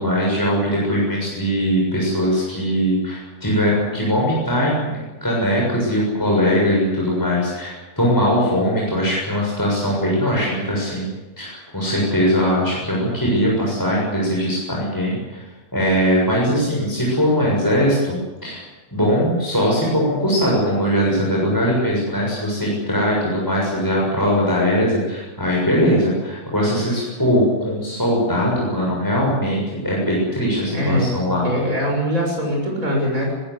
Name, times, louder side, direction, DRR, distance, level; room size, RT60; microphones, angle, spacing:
voice 1, 0.0-15.4 15.7-18.6 18.9-29.6 29.8-31.4, equal, 15° left, -4 dB, 7.1 m, -20 dB
voice 2, 30.7-33.3, equal, 65° right, -1 dB, 7.1 m, -22 dB
22.0 x 20.5 x 8.4 m, 1.1 s
omnidirectional pair, 1.5 m